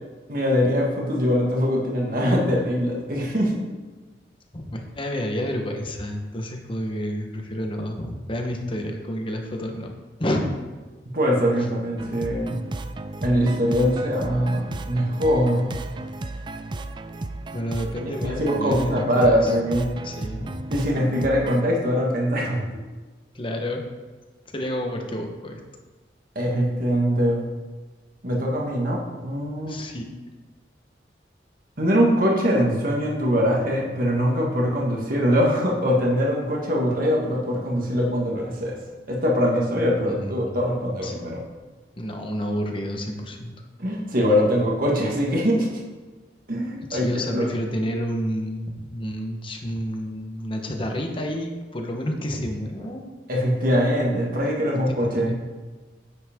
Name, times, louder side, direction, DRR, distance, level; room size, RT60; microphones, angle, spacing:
voice 1, 0.3-3.6 11.1-12.5 13.2-15.7 18.2-19.9 20.7-22.6 26.4-27.4 28.2-29.8 31.8-38.8 39.1-41.4 43.8-45.7 46.5-47.1 47.3-47.5 53.3-55.3, equal, 50° right, -2 dB, 1.9 m, -22 dB
voice 2, 4.5-9.9 10.2-10.5 17.5-19.5 20.0-20.6 23.3-23.8 24.5-25.6 29.6-30.1 40.0-40.5 41.0-41.3 42.0-43.5 46.9-53.1 54.7-55.3, equal, 30° left, 3 dB, 1.2 m, -30 dB
sound 1, 12.0-21.7, right 2 dB, 25° right, 0.4 m, -34 dB
9.7 x 8.0 x 3.7 m, 1.3 s
head